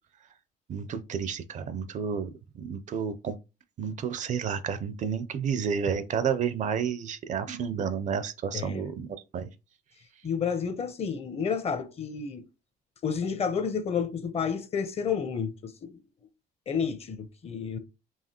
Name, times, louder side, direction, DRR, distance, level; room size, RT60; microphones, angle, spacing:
voice 1, 0.7-3.4 3.8-9.5, right 7 dB, 45° right, 0.5 m, -31 dB
voice 2, 8.5-8.9 10.2-12.5 13.0-16.0 16.7-17.8, left 6 dB, 40° left, 0.7 m, -30 dB
4.8 x 2.8 x 2.8 m
cardioid pair, 110°, 17 cm